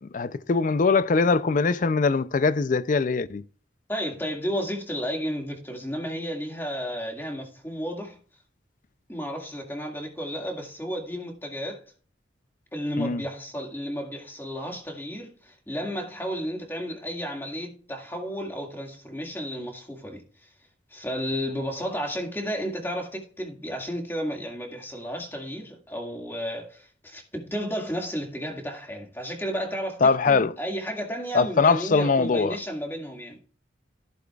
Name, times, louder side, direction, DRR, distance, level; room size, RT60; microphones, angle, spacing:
voice 1, 0.0-3.4 13.0-13.2 30.0-30.5 31.3-32.6, left 4 dB, 45° left, 0.4 m, -22 dB
voice 2, 3.9-8.2 9.1-11.8 12.7-20.2 20.9-33.4, equal, 10° left, 1.9 m, -32 dB
14.5 x 7.7 x 2.4 m
head